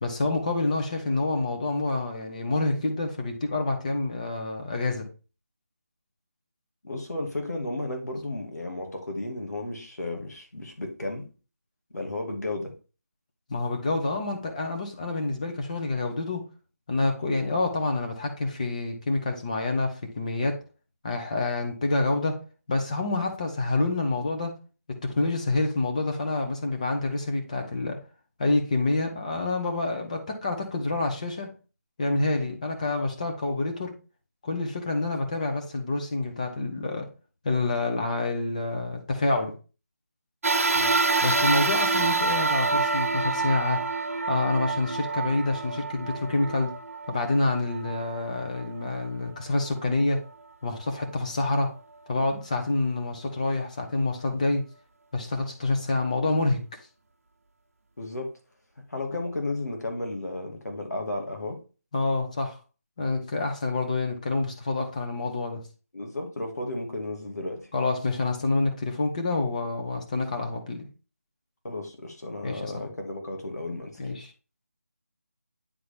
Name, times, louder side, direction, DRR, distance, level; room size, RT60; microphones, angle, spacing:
voice 1, 0.0-5.1 13.5-16.5 16.9-20.6 21.0-22.4 22.7-24.5 24.9-28.0 28.4-31.5 32.0-33.9 34.4-37.1 37.4-39.5 41.2-43.8 44.3-46.8 47.1-50.2 50.6-51.7 52.1-54.6 55.1-56.6 61.9-62.6 63.0-65.6 67.7-70.9 72.4-72.9 74.0-74.3, left 2 dB, 25° left, 1.1 m, -27 dB
voice 2, 6.8-11.3 11.9-12.7 40.7-41.0 58.0-58.3 58.9-61.6 65.9-67.7 71.6-74.1, left 2 dB, 85° left, 2.6 m, -33 dB
sound 1, 40.4-49.0 49.7-49.8 50.9-51.0, right 3 dB, 60° right, 0.9 m, -27 dB
9.8 x 3.8 x 3.5 m
figure-of-eight pair, 175°, 9 cm